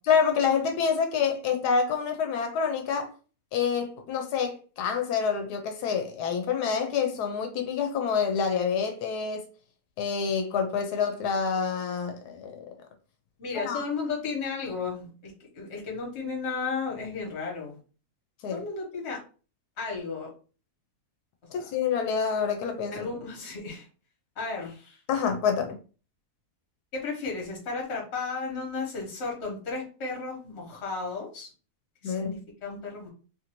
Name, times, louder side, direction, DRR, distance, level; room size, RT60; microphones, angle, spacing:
voice 1, 0.1-3.1 3.5-9.5 10.0-12.6 13.5-13.8 18.4-18.6 21.5-23.1 25.1-25.8 32.0-32.3, left 6 dB, 85° left, 1.1 m, -27 dB
voice 2, 13.4-17.8 18.5-19.2 19.8-20.3 21.5-21.7 22.9-23.9 24.4-25.0 26.9-31.5 32.0-33.1, left 4 dB, 50° left, 1.3 m, -34 dB
3.0 x 2.5 x 2.9 m
omnidirectional pair, 1.6 m